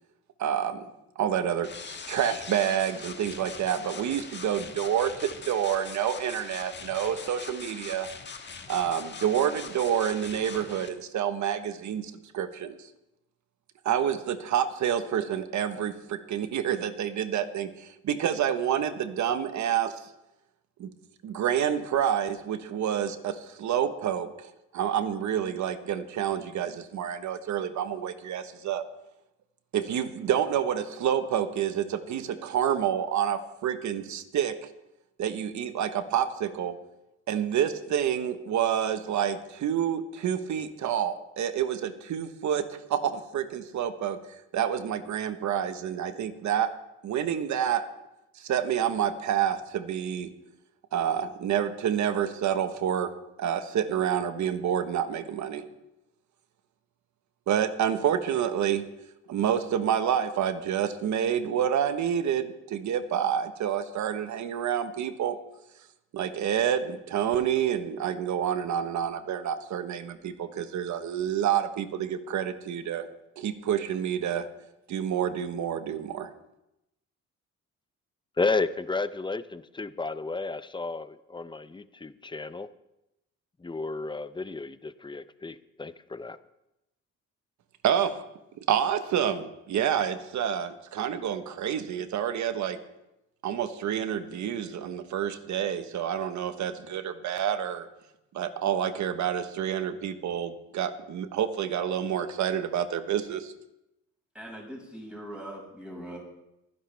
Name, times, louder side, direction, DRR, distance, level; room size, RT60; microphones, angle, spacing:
voice 1, 0.4-8.1 8.7-12.9 13.8-20.0 20.8-20.9 21.2-28.8 29.7-34.7 35.2-36.8 37.3-44.2 44.5-46.7 47.0-47.8 48.4-50.3 50.9-53.1 53.4-55.6 57.5-58.9 59.3-65.4 66.1-73.1 73.4-74.5 74.9-76.3 87.8-88.2 88.6-92.8 93.4-97.9 98.3-103.5, right 9 dB, 70° right, 10 dB, 1.3 m, -28 dB
sound 1, 1.6-10.9, left 5 dB, 35° left, 1.4 m, -42 dB
voice 2, 78.4-82.7 83.6-86.4, left 3 dB, 15° left, 13 dB, 0.6 m, -32 dB
voice 3, 104.3-106.2, equal, 5° right, -3 dB, 6.0 m, -41 dB
24.0 x 11.0 x 3.5 m, 0.89 s
cardioid pair, 90°, 30 cm